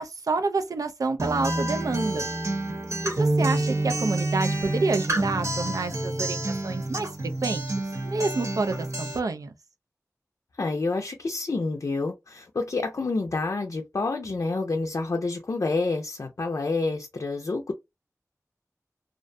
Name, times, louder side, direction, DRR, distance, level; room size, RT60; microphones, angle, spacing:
voice 1, 0.0-2.3 3.0-9.5, right 3 dB, 80° right, 0.4 m, -28 dB
Acoustic guitar, 1.2-9.2, right 2 dB, 55° right, 0.9 m, -28 dB
voice 2, 10.6-17.7, left 3 dB, 60° left, 0.4 m, -28 dB
2.5 x 2.1 x 2.5 m
wide cardioid pair, 50°, 6 cm